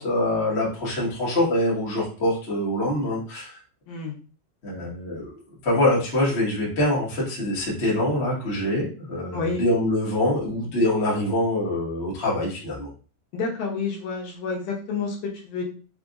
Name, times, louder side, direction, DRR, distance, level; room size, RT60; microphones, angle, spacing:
voice 1, 0.0-3.6 4.6-5.3 5.6-12.9, left 1 dB, 60° left, -6 dB, 0.6 m, -24 dB
voice 2, 13.3-15.6, left 4 dB, 75° left, -2 dB, 2.7 m, -29 dB
6.1 x 2.5 x 2.4 m, 0.38 s
omnidirectional pair, 4.4 m